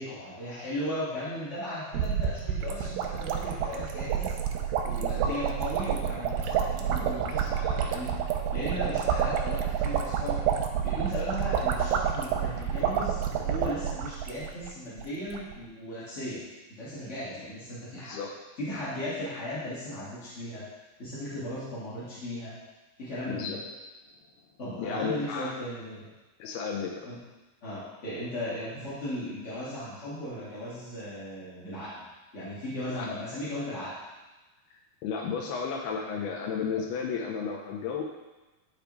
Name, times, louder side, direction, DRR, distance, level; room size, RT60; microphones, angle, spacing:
voice 1, 0.0-4.3 4.8-8.1 8.5-10.4 10.8-16.4 16.8-18.1 18.6-20.6 21.0-22.5 23.0-23.6 24.6-26.1 27.1-27.2 27.6-32.1 32.3-33.9, left 1 dB, 30° left, -11 dB, 1.2 m, -36 dB
sound 1, 1.9-14.7 15.0-15.1 15.3-15.5, right 8 dB, 90° right, 2.5 m, -29 dB
voice 2, 5.0-5.4 7.4-7.7 18.0-18.3 23.3-23.6 24.7-25.6 26.4-27.1 33.0-33.1 35.0-38.0, left 6 dB, 90° left, 1 dB, 2.7 m, -33 dB
10.5 x 5.1 x 3.1 m, 1.1 s
omnidirectional pair, 4.4 m